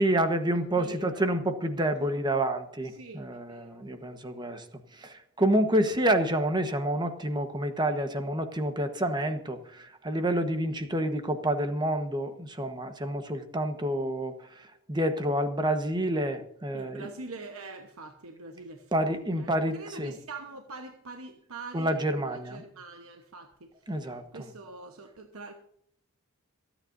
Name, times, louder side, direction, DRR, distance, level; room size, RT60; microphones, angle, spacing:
voice 1, 0.0-4.6 5.0-14.3 14.9-17.1 18.9-20.1 21.7-22.6 23.9-24.4, right 1 dB, 20° right, 7 dB, 1.2 m, -28 dB
voice 2, 0.8-1.4 2.0-2.1 2.8-3.8 16.7-25.5, right 3 dB, 90° right, 4 dB, 1.2 m, -44 dB
27.5 x 9.2 x 2.7 m, 0.71 s
head